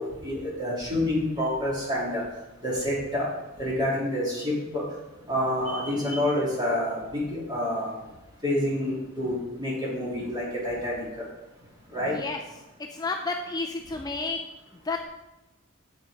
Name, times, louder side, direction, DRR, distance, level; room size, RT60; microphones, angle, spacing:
voice 1, 0.0-2.2 2.6-3.3 3.6-4.8 5.3-7.9 8.4-11.0 11.9-12.1, left 1 dB, 20° right, -5 dB, 3.1 m, -28 dB
voice 2, 12.9-14.4 14.8-15.0, left 3 dB, 20° left, 3 dB, 0.4 m, -31 dB
7.9 x 6.6 x 5.0 m, 1.0 s
head